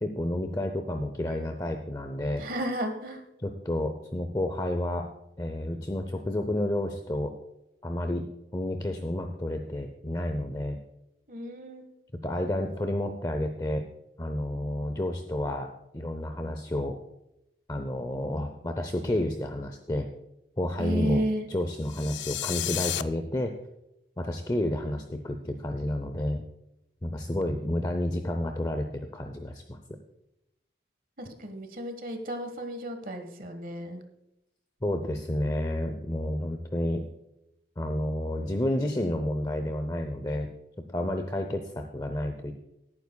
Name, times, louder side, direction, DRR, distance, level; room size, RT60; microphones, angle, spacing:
voice 1, 0.0-2.4 3.4-5.1 5.4-7.3 7.8-8.3 8.5-10.8 12.2-13.8 14.2-15.7 15.9-17.0 17.7-20.1 20.6-21.2 21.5-23.5 24.2-26.4 27.0-29.8 34.8-37.0 37.8-40.5 40.9-42.5, left 1 dB, 20° left, 6 dB, 0.6 m, -30 dB
voice 2, 2.4-3.2 11.3-11.8 20.8-21.5 31.2-34.0, right 1 dB, 50° right, 7 dB, 1.4 m, -33 dB
sound 1, 21.8-23.0, left 13 dB, 80° left, 0.4 m, -32 dB
18.0 x 9.4 x 2.3 m, 0.86 s
head